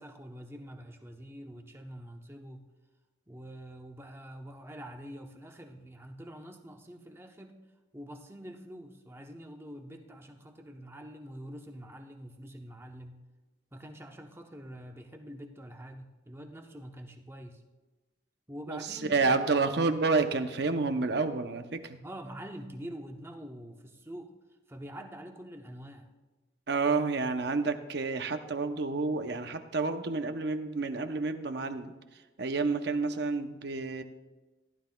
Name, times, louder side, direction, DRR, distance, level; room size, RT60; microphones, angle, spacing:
voice 1, 0.0-2.6 3.3-7.6 7.9-13.2 13.7-17.6 18.5-19.2 22.0-24.3 24.7-26.1, equal, 15° right, 3 dB, 0.8 m, -45 dB
voice 2, 18.7-22.0 26.7-31.9 32.4-34.0, right 3 dB, 65° right, 8 dB, 0.7 m, -29 dB
15.0 x 11.0 x 2.3 m, 1.1 s
head